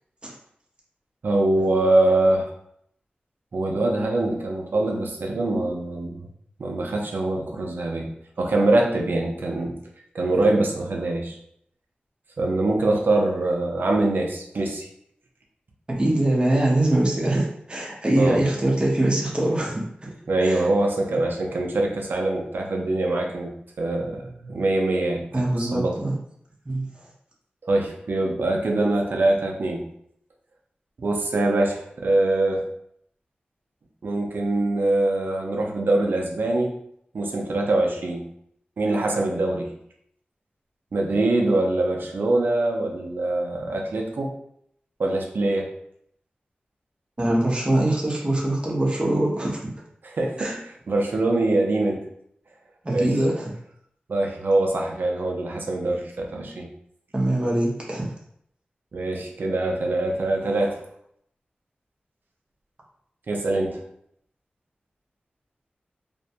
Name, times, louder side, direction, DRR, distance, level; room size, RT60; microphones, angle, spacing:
voice 1, 1.2-2.5 3.5-6.3 6.6-8.1 8.4-9.8 10.1-11.4 12.4-14.9 18.2-18.4 20.3-23.5 23.8-25.3 25.6-26.0 27.6-29.8 31.0-32.7 34.0-36.8 37.1-38.2 38.8-39.7 40.9-44.3 45.0-45.7 50.0-52.0 52.9-53.2 54.1-56.7 58.9-60.8 63.3-63.8, right 2 dB, 75° right, 0 dB, 0.5 m, -23 dB
voice 2, 16.0-19.8 20.4-20.6 25.3-26.1 26.7-26.9 47.2-49.6 50.4-50.5 52.8-53.5 57.1-58.1, right 1 dB, 30° right, -3 dB, 0.7 m, -23 dB
2.5 x 2.1 x 2.7 m, 0.71 s
wide cardioid pair, 75°, 3 cm